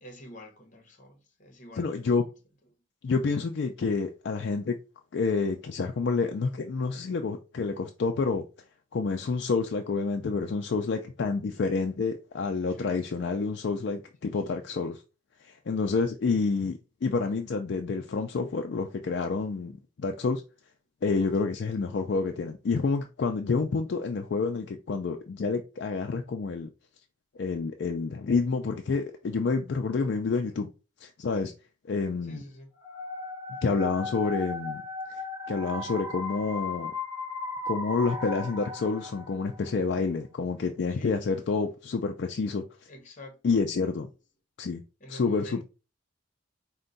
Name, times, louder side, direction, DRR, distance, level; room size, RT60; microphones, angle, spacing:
voice 1, 0.0-2.1 11.5-11.8 12.7-12.9 14.2-14.7 21.1-21.4 30.5-30.6 32.2-32.7 40.9-41.2 42.9-43.7 45.0-45.6, equal, 40° left, 0.9 m, -48 dB
voice 2, 1.8-2.2 3.0-4.8 5.1-8.4 8.9-15.0 15.4-19.7 20.0-20.4 21.0-26.7 27.4-30.7 31.0-31.5 31.9-32.4 33.6-34.8 35.1-35.2 35.5-36.9 37.7-42.6 43.4-44.1 44.6-44.8 45.1-45.6, left 4 dB, 60° left, 0.4 m, -28 dB
sound 1, 32.8-39.6, left 2 dB, 20° right, 1.1 m, -36 dB
4.5 x 2.2 x 3.9 m
head